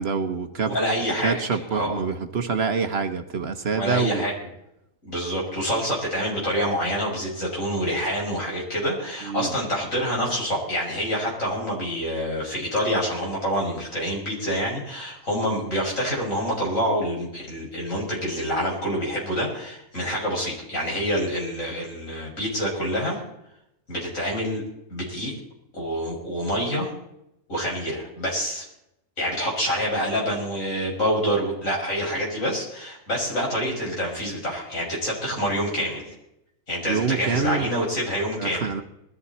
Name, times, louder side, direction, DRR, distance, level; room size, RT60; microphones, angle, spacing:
voice 1, 0.0-0.7 1.2-4.2 9.2-9.5 36.8-37.7 38.4-38.8, right 5 dB, 50° right, 8 dB, 1.2 m, -26 dB
voice 2, 0.7-1.4 1.7-2.0 3.7-4.4 5.0-23.2 23.9-24.6 24.9-25.3 25.7-26.9 27.5-28.6 29.2-36.1 36.7-38.8, equal, 70° left, -3 dB, 6.7 m, -27 dB
20.5 x 14.0 x 4.3 m, 0.81 s
omnidirectional pair, 1.4 m